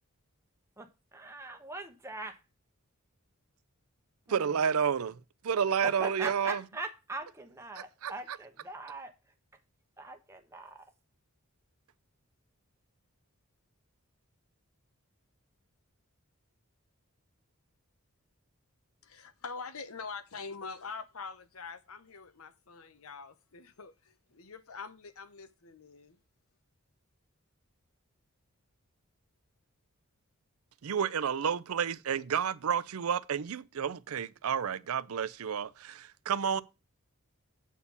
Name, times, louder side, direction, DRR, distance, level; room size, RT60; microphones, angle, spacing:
voice 1, 0.8-2.4 4.3-4.7 5.5-9.3 10.0-10.9, right 2 dB, 10° right, 1.0 m, -42 dB
voice 2, 4.3-6.6 8.0-8.1 30.8-36.6, right 7 dB, 80° right, 0.5 m, -30 dB
voice 3, 19.0-26.2, left 4 dB, 75° left, 0.9 m, -44 dB
8.4 x 4.4 x 6.9 m
head